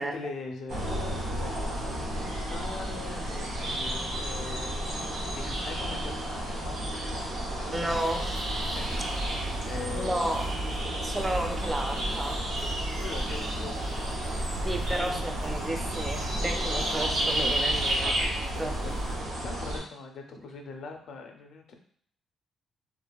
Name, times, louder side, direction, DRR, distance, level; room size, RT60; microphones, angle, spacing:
voice 1, 0.0-4.8 5.1-7.7 8.3-10.4 13.0-13.8 14.9-15.2 17.4-17.8 18.0-18.9 19.4-21.7, left 4 dB, 70° left, 3 dB, 0.5 m, -42 dB
sound 1, 0.7-19.8, right 1 dB, 75° right, 0.8 m, -32 dB
voice 2, 7.7-8.4 10.0-10.5 11.0-12.4 14.6-18.1 18.6-18.7, right 1 dB, 15° right, 4 dB, 0.4 m, -32 dB
sound 2, 7.8-19.1, right 1 dB, 55° right, 1.1 m, -37 dB
2.7 x 2.5 x 2.2 m, 0.63 s
cardioid pair, 90°, 0 cm